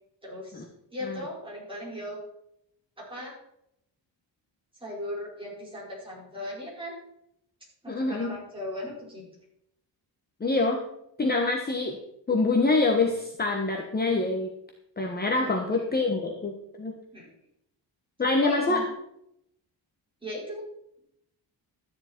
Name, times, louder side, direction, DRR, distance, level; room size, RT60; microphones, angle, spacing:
voice 1, 0.2-0.6 0.9-2.2 3.0-3.3 4.8-6.9 7.8-9.2 15.4-15.8 17.1-17.3 18.4-18.8 20.2-20.6, left 1 dB, 10° right, -5 dB, 5.1 m, -37 dB
voice 2, 7.9-8.4 10.4-10.8 11.2-12.0 12.3-14.5 15.0-16.9 18.2-18.8, left 3 dB, 20° left, 2 dB, 1.1 m, -25 dB
13.0 x 9.8 x 4.5 m, 0.77 s
wide cardioid pair, 175°, 44 cm